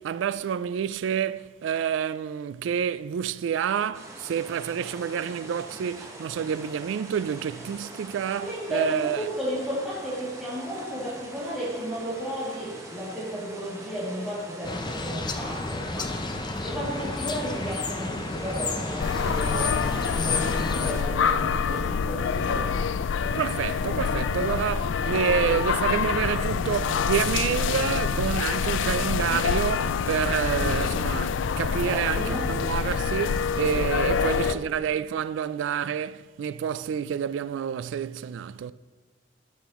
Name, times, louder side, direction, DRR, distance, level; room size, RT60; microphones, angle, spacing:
voice 1, 0.0-9.3 23.3-38.7, right 8 dB, 80° right, 0.3 m, -28 dB
sound 1, 3.9-21.0, right 1 dB, 15° right, 1.2 m, -43 dB
voice 2, 8.3-16.1 16.6-22.9 31.8-32.5 34.1-34.6, equal, ahead, 2.5 m, -33 dB
Ambience City, 14.6-20.9, left 3 dB, 25° left, 0.6 m, -31 dB
sound 2, 19.0-34.5, left 6 dB, 85° left, 0.4 m, -26 dB
12.5 x 8.7 x 3.0 m
head